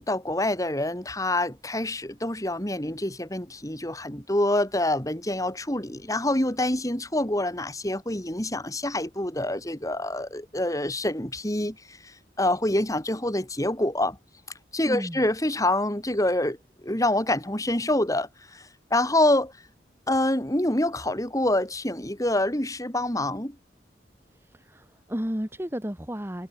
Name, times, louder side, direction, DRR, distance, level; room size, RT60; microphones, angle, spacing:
voice 1, 0.0-12.0 12.4-14.2 14.7-18.6 18.9-19.5 20.1-23.5, left 1 dB, 20° left, 4.0 m, -26 dB
voice 2, 14.8-15.2 24.5-26.5, equal, 15° right, 1.8 m, -33 dB
head